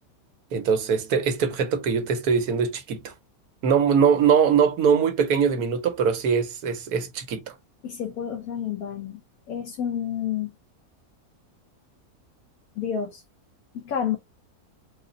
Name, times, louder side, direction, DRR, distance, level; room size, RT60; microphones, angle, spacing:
voice 1, 0.5-3.1 3.6-7.4, right 6 dB, 75° right, 1.3 m, -22 dB
voice 2, 7.8-9.2 9.5-10.5 12.8-13.2 13.7-14.2, left 8 dB, 70° left, 1.2 m, -29 dB
3.9 x 2.1 x 3.8 m
omnidirectional pair, 1.6 m